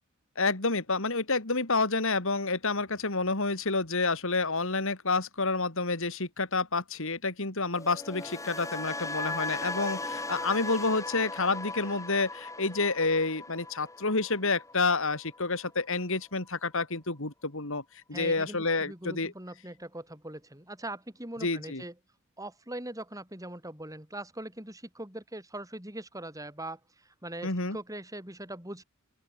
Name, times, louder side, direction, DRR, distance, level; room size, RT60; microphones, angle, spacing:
voice 1, 0.4-17.8 18.1-19.3 21.4-21.8 27.4-27.8, left 3 dB, 60° left, 3.0 m, -29 dB
sound 1, 7.7-15.9 16.1-16.5, left 2 dB, 15° left, 7.2 m, -38 dB
voice 2, 18.1-21.9 22.4-28.8, right 1 dB, 15° right, 6.8 m, -41 dB
open air
head